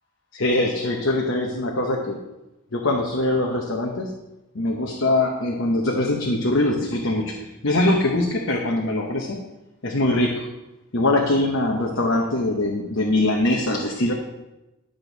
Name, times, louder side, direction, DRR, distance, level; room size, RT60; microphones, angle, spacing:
voice 1, 0.3-2.2 2.7-4.1 4.5-9.4 9.8-10.5 10.9-14.1, left 2 dB, 60° left, 0 dB, 1.0 m, -22 dB
11.0 x 6.6 x 4.0 m, 1.0 s
head